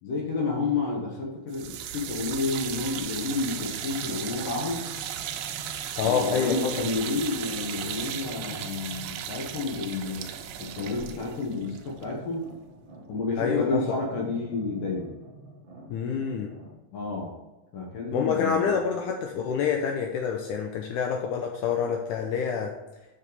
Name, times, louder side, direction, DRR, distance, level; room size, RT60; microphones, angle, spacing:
voice 1, 0.0-4.8 6.0-10.3 10.6-12.5 13.1-15.1 16.9-17.3 17.7-18.8, left 3 dB, 65° left, -2 dB, 2.8 m, -30 dB
sound 1, 1.5-12.6, right 10 dB, 90° right, 2.6 m, -36 dB
sound 2, 3.3-16.7, right 2 dB, 65° right, 1.1 m, -48 dB
voice 2, 6.0-6.7 13.4-13.8 15.9-16.5 18.1-22.7, left 6 dB, 85° left, 2 dB, 1.8 m, -27 dB
7.6 x 6.3 x 4.1 m, 1.1 s
omnidirectional pair, 4.3 m